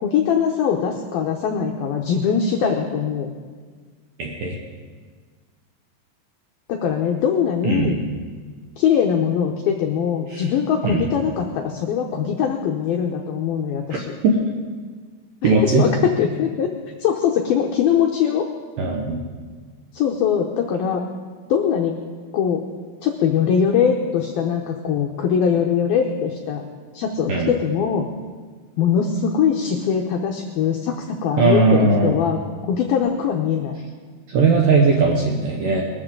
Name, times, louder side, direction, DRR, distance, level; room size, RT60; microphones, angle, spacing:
voice 1, 0.0-3.3 6.7-8.0 8.8-14.1 15.4-16.7 17.0-18.5 19.9-21.0 21.5-22.0 22.3-22.6 23.0-26.6 26.9-28.1 28.8-32.4 32.7-33.7, left 7 dB, 85° left, 2 dB, 2.1 m, -21 dB
voice 2, 4.2-4.6 7.6-8.0 10.3-10.4 10.8-11.1 14.2-14.3 15.4-15.8 18.8-19.2 27.3-27.5 31.4-32.2 34.3-35.8, right 3 dB, 70° right, -1 dB, 2.1 m, -18 dB
22.0 x 13.5 x 3.8 m, 1.5 s
omnidirectional pair, 5.5 m